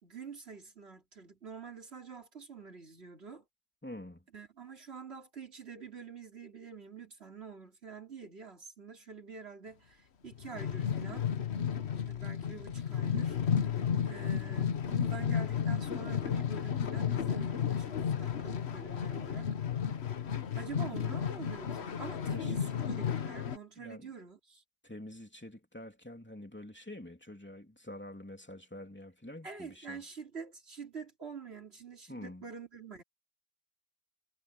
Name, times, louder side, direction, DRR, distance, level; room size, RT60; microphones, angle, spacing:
voice 1, 0.0-3.4 4.3-11.3 12.0-13.4 14.0-19.5 20.5-24.6 29.4-33.0, right 5 dB, 85° right, 3.3 m, -47 dB
voice 2, 3.8-4.2 22.3-22.7 23.8-24.1 24.8-30.0 32.1-32.5, left 1 dB, 10° left, 2.9 m, -47 dB
sound 1, 10.3-23.6, left 8 dB, 85° left, 1.4 m, -33 dB
omnidirectional pair, 1.1 m